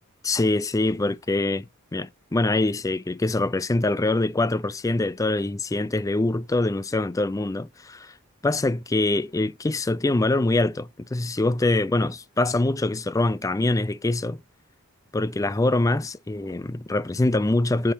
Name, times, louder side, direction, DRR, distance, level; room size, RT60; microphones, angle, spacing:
voice 1, 0.2-1.7 1.9-8.1 8.4-14.4 15.1-17.9, left 2 dB, 15° left, 0.4 m, -24 dB
7.3 x 5.0 x 2.7 m
head